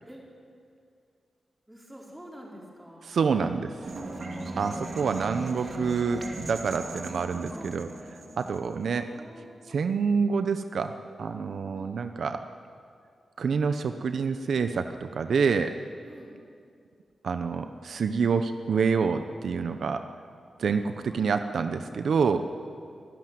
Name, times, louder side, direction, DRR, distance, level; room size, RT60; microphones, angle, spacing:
voice 1, 1.7-3.1 6.7-7.9 8.9-9.8 11.7-12.0 16.0-16.3 20.7-21.8, equal, 10° right, -3 dB, 5.1 m, -48 dB
voice 2, 3.0-3.7 4.6-7.9 8.4-9.0 9.7-12.4 13.4-15.7 17.2-20.1 20.6-22.4, right 5 dB, 75° right, 8 dB, 0.8 m, -27 dB
sound 1, 3.8-8.9, right 2 dB, 50° right, 2.7 m, -38 dB
24.0 x 13.5 x 9.5 m, 2.3 s
wide cardioid pair, 110°, 0 cm